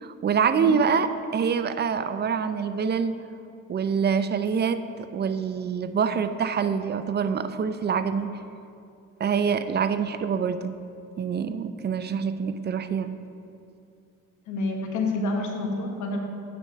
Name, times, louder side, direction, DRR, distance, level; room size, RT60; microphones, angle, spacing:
voice 1, 0.0-3.1 3.7-8.3 9.2-10.7 11.2-13.1, right 6 dB, 35° right, 11 dB, 0.4 m, -25 dB
voice 2, 14.5-16.2, left 2 dB, 75° left, 2 dB, 1.2 m, -28 dB
8.4 x 4.7 x 5.5 m, 2.5 s
cardioid pair, 90°, 30 cm